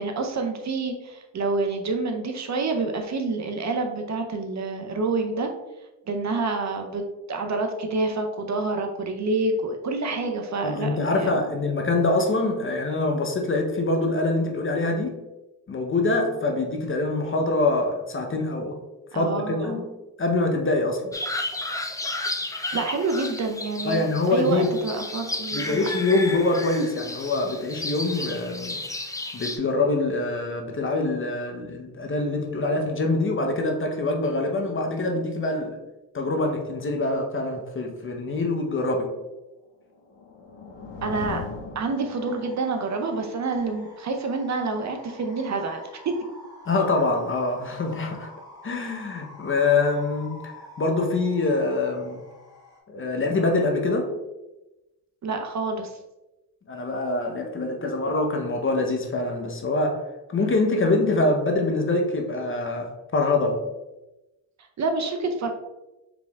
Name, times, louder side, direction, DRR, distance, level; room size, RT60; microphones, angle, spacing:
voice 1, 0.0-5.5 6.1-11.3 19.1-19.8 22.7-25.9 41.0-41.5 41.7-46.1 55.2-56.0 64.8-65.5, right 3 dB, 40° right, 4 dB, 0.7 m, -28 dB
voice 2, 10.6-15.2 15.7-18.8 19.1-19.9 20.2-21.2 23.8-24.7 25.5-28.8 29.3-35.8 36.1-39.1 46.7-48.3 48.6-50.4 50.8-52.2 52.9-54.1 56.7-60.0 60.3-63.6, left 2 dB, 30° left, 3 dB, 0.8 m, -24 dB
sound 1, 21.1-29.6, left 2 dB, 10° left, 0.4 m, -33 dB
sound 2, 39.8-42.7, left 4 dB, 75° left, 1.3 m, -39 dB
sound 3, 41.8-52.8, left 1 dB, 10° right, 1.3 m, -47 dB
5.0 x 3.3 x 2.3 m, 1.0 s
supercardioid pair, 65°, 42 cm